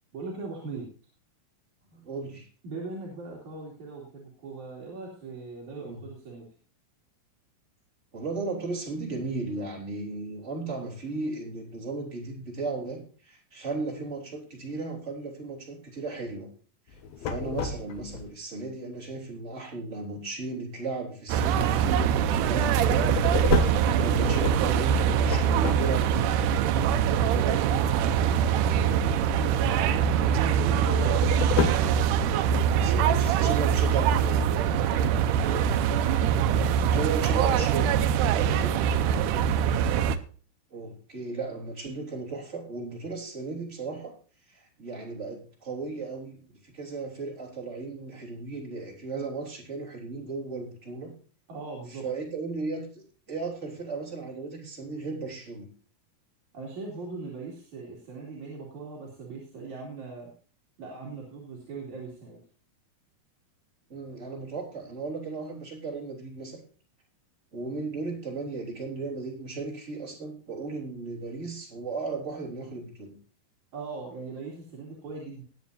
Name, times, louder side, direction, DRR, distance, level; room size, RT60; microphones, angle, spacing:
voice 1, 0.1-0.9 2.6-6.5 27.1-29.2 29.6-31.5 35.4-35.7 38.3-39.6 51.5-52.0 56.5-60.3 60.8-62.4 73.7-75.4, right 4 dB, 50° right, -3 dB, 4.0 m, -39 dB
voice 2, 1.9-2.5 5.8-6.0 8.1-16.5 16.9-26.3 32.6-34.5 36.9-38.0 40.7-44.1 44.5-51.1 51.9-55.7 63.9-66.6 67.5-73.1, right 3 dB, 20° right, -1 dB, 3.4 m, -35 dB
sound 1, 16.9-18.2 22.7-26.3 30.8-32.0, left 7 dB, 80° left, 2.9 m, -31 dB
sound 2, 21.3-40.2, right 8 dB, 75° right, 1.9 m, -23 dB
20.0 x 8.8 x 2.7 m, 0.39 s
omnidirectional pair, 4.4 m